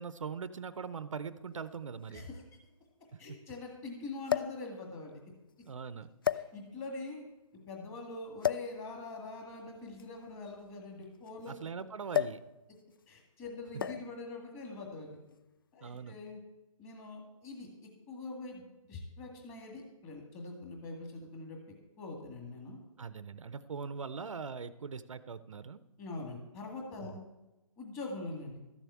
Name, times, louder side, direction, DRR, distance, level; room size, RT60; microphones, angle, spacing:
voice 1, 0.0-2.3 3.1-3.4 5.7-6.1 11.5-12.4 15.8-16.2 23.0-25.8 27.0-27.2, right 5 dB, 60° right, 14 dB, 0.7 m, -41 dB
sound 1, 0.5-0.6 1.7-1.8 2.1-2.2 4.3-4.7 5.5-5.7 6.2-6.9 8.4-8.8 9.9-11.5 12.1-12.5 12.8-13.0 13.8-14.2 15.1-15.4, left 9 dB, 40° left, 0.4 m, -33 dB
voice 2, 2.1-2.4 3.2-5.2 6.3-7.2 7.7-11.6 13.1-15.2 15.7-16.4 16.8-17.7 18.1-21.6 22.0-22.8 26.0-27.2 27.8-28.6, left 3 dB, 15° left, 1 dB, 1.8 m, -43 dB
13.0 x 7.2 x 8.4 m, 1.0 s
hypercardioid pair, 160°, 18 cm